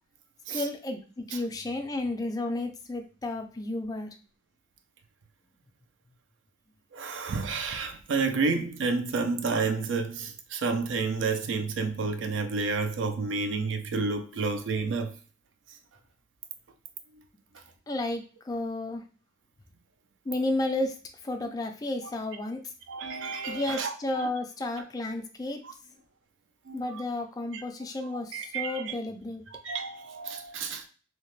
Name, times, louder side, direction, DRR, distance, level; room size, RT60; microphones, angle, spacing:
voice 1, 0.5-4.1 17.9-19.0 20.3-21.0 21.2-22.6 23.5-25.6 26.7-29.4, left 2 dB, 20° left, 0.3 m, -32 dB
voice 2, 6.9-15.1 22.9-23.9 24.2-24.3 25.6-25.7 26.7-27.0 27.5-27.6 28.3-28.9 29.6-30.9, right 4 dB, 75° right, 0.4 m, -30 dB
2.8 x 2.1 x 3.0 m
head